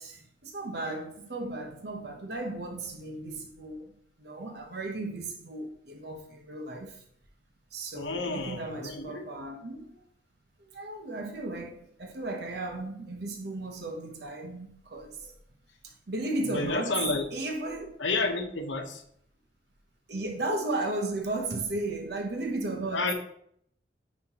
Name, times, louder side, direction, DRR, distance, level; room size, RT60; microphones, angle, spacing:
voice 1, 0.0-3.9 4.2-7.0 7.7-9.9 10.7-15.3 15.8-17.0 17.3-18.0 20.1-23.1, right 2 dB, 60° right, 0.9 m, -35 dB
voice 2, 7.9-9.2 16.4-17.3 18.0-19.0 22.9-23.1, left 3 dB, 75° left, 1.0 m, -30 dB
9.5 x 4.3 x 2.9 m
head